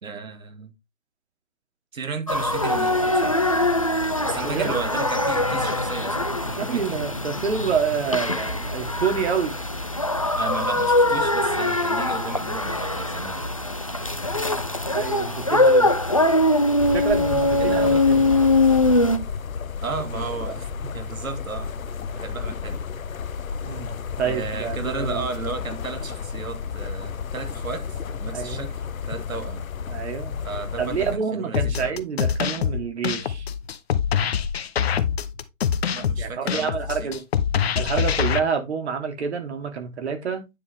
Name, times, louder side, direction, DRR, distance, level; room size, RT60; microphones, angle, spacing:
voice 1, 0.0-0.7 1.9-3.5 4.2-7.0 10.4-13.4 17.6-18.1 19.8-21.7 22.1-22.8 24.3-29.7 30.4-32.0 35.9-37.1, right 4 dB, 80° right, 1.9 m, -34 dB
sound 1, 2.3-19.2, left 2 dB, 30° left, 0.3 m, -22 dB
voice 2, 4.4-4.7 6.6-9.5 14.3-14.6 14.9-15.9 16.9-18.4 23.6-25.3 28.3-28.6 29.9-30.4 30.8-33.5 36.2-37.2 37.8-40.4, right 6 dB, 55° right, 2.6 m, -28 dB
sound 2, 16.8-31.2, left 6 dB, 80° left, 0.9 m, -32 dB
sound 3, 31.5-38.4, left 8 dB, 50° left, 0.8 m, -24 dB
9.6 x 5.0 x 3.5 m
hypercardioid pair, 150°, 40 cm